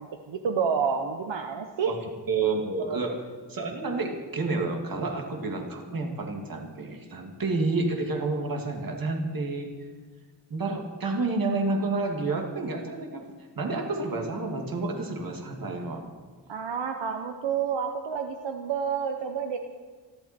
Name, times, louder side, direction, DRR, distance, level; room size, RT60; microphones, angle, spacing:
voice 1, 0.0-2.0 2.8-3.0 16.5-19.6, right 6 dB, 75° right, 5 dB, 1.1 m, -29 dB
voice 2, 2.3-3.2 3.5-9.7 10.5-13.3 13.6-16.1, right 3 dB, 50° right, 2 dB, 2.4 m, -29 dB
27.5 x 12.0 x 4.4 m, 1.5 s
wide cardioid pair, 170°, 44 cm